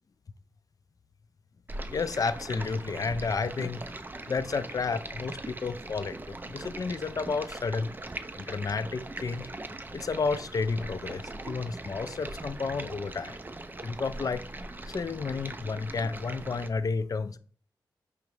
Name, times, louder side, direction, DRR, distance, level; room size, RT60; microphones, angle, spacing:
Stream, 1.7-16.7, right 2 dB, 25° right, 0.4 m, -41 dB
voice 1, 1.9-3.9 4.3-7.9 8.4-9.5 9.9-13.4 13.8-14.4 14.9-17.4, left 4 dB, 45° left, 0.3 m, -31 dB
4.9 x 2.3 x 3.1 m
cardioid pair, 40°, 8 cm